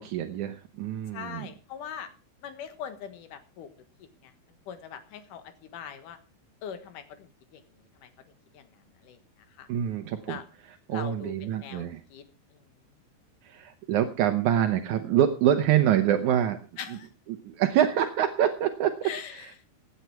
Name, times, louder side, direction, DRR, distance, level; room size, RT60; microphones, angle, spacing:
voice 1, 0.0-1.5 9.7-10.4 10.9-12.0 13.4-16.6 17.3-19.1, right 10 dB, 75° right, 7 dB, 1.8 m, -25 dB
voice 2, 1.1-2.1 2.4-3.7 4.0-4.3 4.7-6.2 6.6-8.1 8.5-9.7 10.3-10.4 10.9-12.2 12.5-12.6 16.8-17.1 19.0-19.6, left 8 dB, 60° left, 10 dB, 2.6 m, -42 dB
16.5 x 9.8 x 4.6 m, 0.35 s
omnidirectional pair, 4.8 m